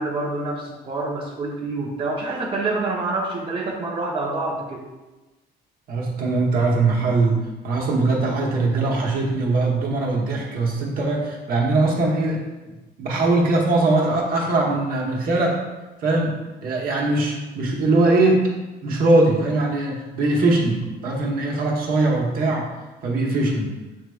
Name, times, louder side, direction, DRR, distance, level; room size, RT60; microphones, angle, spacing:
voice 1, 0.0-4.8, right 2 dB, 30° right, -4 dB, 0.8 m, -27 dB
voice 2, 5.9-12.4 13.0-15.6 16.0-18.5 18.8-22.7 23.0-23.7, right 2 dB, 60° right, -2 dB, 1.1 m, -21 dB
7.1 x 3.1 x 2.3 m, 1.1 s
cardioid pair, 110°, 17 cm